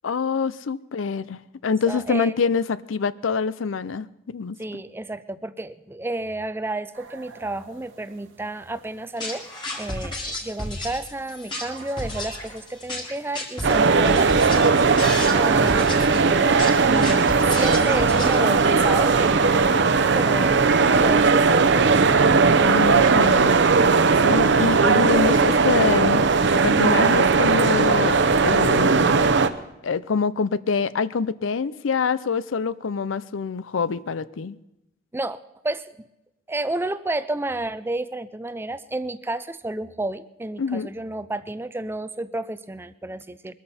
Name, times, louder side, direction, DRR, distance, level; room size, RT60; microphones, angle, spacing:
voice 1, 0.0-4.6 22.6-23.6 24.2-26.3 26.6-29.3 29.8-34.6 40.6-40.9, left 5 dB, 85° left, 17 dB, 0.5 m, -25 dB
voice 2, 1.9-2.3 4.6-9.5 9.8-20.6 21.0-21.8 35.1-35.4 35.6-36.1 36.5-43.5, right 2 dB, 10° right, 14 dB, 0.4 m, -31 dB
sound 1, 6.9-21.9 22.3-23.1, right 5 dB, 80° right, 1.4 m, -38 dB
sound 2, 9.2-18.7, left 1 dB, 25° left, 2.2 m, -32 dB
sound 3, 13.6-29.5, right 4 dB, 65° right, 0.7 m, -18 dB
22.0 x 13.5 x 4.3 m, 0.91 s
head